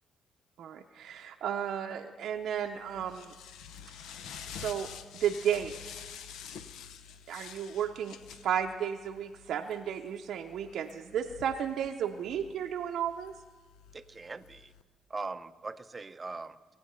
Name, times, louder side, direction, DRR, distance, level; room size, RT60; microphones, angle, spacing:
voice 1, 0.6-3.3 4.4-4.9 5.1-5.7 7.3-8.2 8.4-13.3, right 9 dB, 70° right, 3 dB, 0.6 m, -33 dB
sound 1, 2.4-14.8, left 7 dB, 85° left, 0.7 m, -49 dB
voice 2, 13.9-14.7 15.1-16.8, right 3 dB, 25° right, 12 dB, 0.6 m, -41 dB
21.5 x 8.6 x 5.6 m, 1.4 s
cardioid pair, 90°, 0 cm